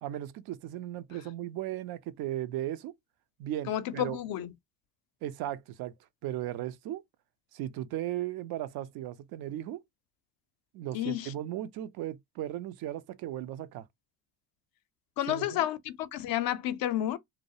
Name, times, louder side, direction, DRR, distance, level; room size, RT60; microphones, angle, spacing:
voice 1, 0.0-2.9 3.4-4.2 5.2-5.9 6.2-7.0 7.5-9.8 10.7-13.9 15.3-15.7, right 13 dB, 60° right, 0.5 m, -36 dB
voice 2, 3.7-4.5 10.9-11.3 15.2-17.2, left 12 dB, 55° left, 0.5 m, -31 dB
2.3 x 2.1 x 2.6 m
supercardioid pair, 75°, 41 cm